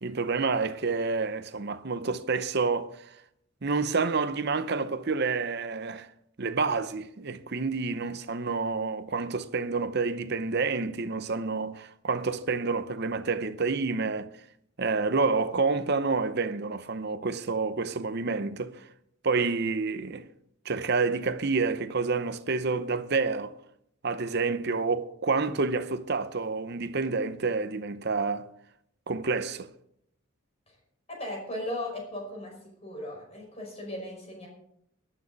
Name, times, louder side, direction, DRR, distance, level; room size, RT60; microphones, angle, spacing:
voice 1, 0.0-3.1 3.6-6.1 6.4-14.3 14.8-18.8 19.2-20.3 20.6-23.5 24.0-28.5 29.1-29.7, right 4 dB, 50° right, 0.8 m, -28 dB
voice 2, 31.1-32.6 32.8-34.5, left 1 dB, 30° left, 5.4 m, -37 dB
18.5 x 12.0 x 4.1 m
head